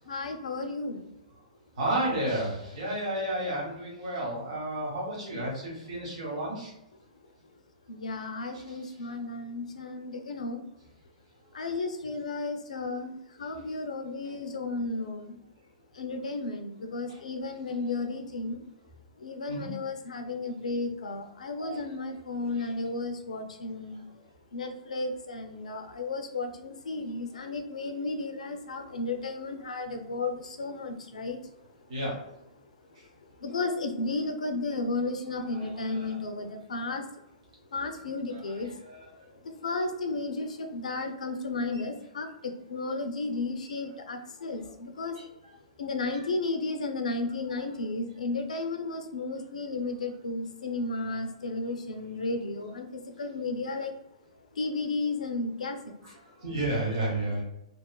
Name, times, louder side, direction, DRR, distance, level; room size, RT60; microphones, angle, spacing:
voice 1, 0.1-1.1 7.9-10.6 11.5-15.4 15.9-18.6 19.2-24.0 24.5-31.4 33.4-37.1 37.7-38.7 39.4-45.2 45.8-53.9 54.5-55.9, left 3 dB, 80° left, 6 dB, 0.4 m, -33 dB
voice 2, 1.8-6.7 8.5-8.8 17.1-17.2 19.5-19.7 21.6-21.8 22.5-22.7 31.9-32.1 35.4-36.2 38.8-39.0 41.7-41.8 45.2-45.3 46.1-46.2 47.5-47.6 56.0-56.1 56.4-57.4, right 1 dB, 60° right, -4 dB, 1.0 m, -32 dB
2.8 x 2.3 x 2.2 m, 0.85 s
hypercardioid pair, 120°, 4 cm